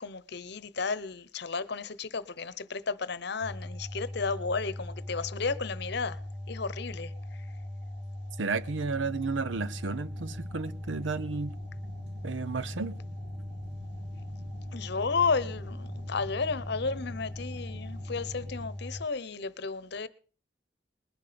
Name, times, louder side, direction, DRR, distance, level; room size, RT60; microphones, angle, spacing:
voice 1, 0.0-6.2 6.5-7.5 14.7-20.1, left 4 dB, 60° left, 0.9 m, -33 dB
sound 1, 3.4-19.0, left 1 dB, 35° right, 3.6 m, -40 dB
voice 2, 8.4-11.5 12.2-12.9, right 4 dB, 85° right, 0.7 m, -32 dB
sound 2, 8.9-18.7, right 1 dB, 60° right, 1.2 m, -50 dB
20.5 x 11.0 x 5.1 m
head